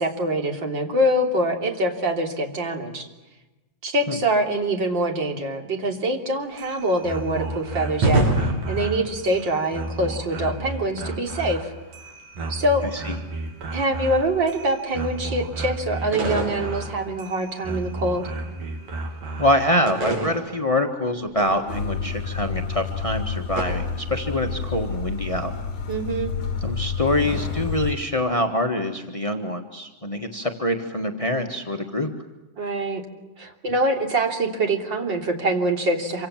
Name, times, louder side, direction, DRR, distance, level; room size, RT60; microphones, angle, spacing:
voice 1, 0.0-3.1 3.8-8.3 8.7-11.7 12.5-12.8 13.7-18.3 25.9-26.3 32.6-33.0 33.4-36.3, right 1 dB, 35° right, 3 dB, 3.6 m, -24 dB
sound 1, 6.4-19.7, right 2 dB, 85° right, 4.5 m, -33 dB
sound 2, 8.0-9.7 14.0-14.4 16.1-17.4 17.6-17.9 19.9-21.9 23.6-23.7, right 2 dB, 55° right, 8.2 m, -26 dB
voice 2, 19.4-25.5 26.6-32.1, left 1 dB, 30° left, 4 dB, 0.6 m, -25 dB
sound 3, 21.7-27.9, left 5 dB, 65° left, 4.5 m, -29 dB
27.0 x 26.0 x 7.5 m, 1.1 s
omnidirectional pair, 3.8 m